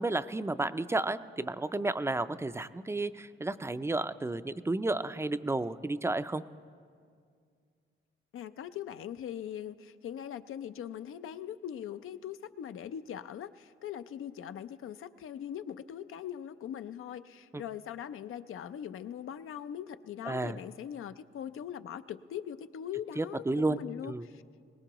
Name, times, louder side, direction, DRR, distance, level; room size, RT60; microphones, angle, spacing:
voice 1, 0.0-6.4 17.5-17.6 20.3-20.6 23.2-23.8 24.0-24.2, right 2 dB, 15° right, 13 dB, 0.3 m, -32 dB
voice 2, 8.3-24.4, left 9 dB, 85° left, 12 dB, 0.5 m, -41 dB
22.0 x 19.0 x 3.0 m, 2.2 s
wide cardioid pair, 110°, 21 cm